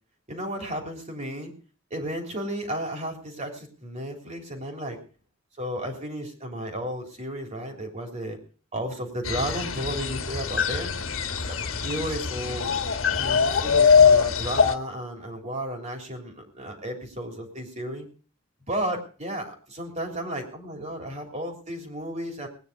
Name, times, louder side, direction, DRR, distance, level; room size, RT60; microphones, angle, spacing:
voice 1, 0.3-1.5 1.9-5.0 5.6-8.4 8.7-11.0 11.4-12.7 13.1-18.1 18.7-22.5, right 1 dB, 35° right, 3 dB, 3.5 m, -33 dB
sound 1, 9.3-14.8, left 6 dB, 80° left, 1.5 m, -22 dB
19.0 x 9.8 x 5.1 m, 0.40 s
head